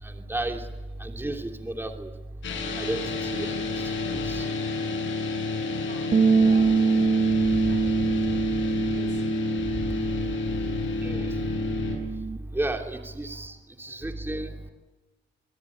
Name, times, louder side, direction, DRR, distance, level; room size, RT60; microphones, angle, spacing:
voice 1, 0.0-0.7 1.0-2.1 2.8-3.9 4.2-4.5 6.6-6.8 7.3-8.6 9.8-11.4 12.1-14.6, right 1 dB, 10° right, 3 dB, 3.0 m, -34 dB
sound 1, 2.4-12.0, left 3 dB, 75° left, 7.8 m, -30 dB
voice 2, 4.9-5.3 5.9-9.3 10.8-11.0 13.3-13.4 13.8-13.9, right 4 dB, 65° right, 6 dB, 7.9 m, -50 dB
sound 2, 6.1-12.4, right 5 dB, 30° right, 1.8 m, -25 dB
24.5 x 22.5 x 10.0 m, 1.2 s
cardioid pair, 90°, 20 cm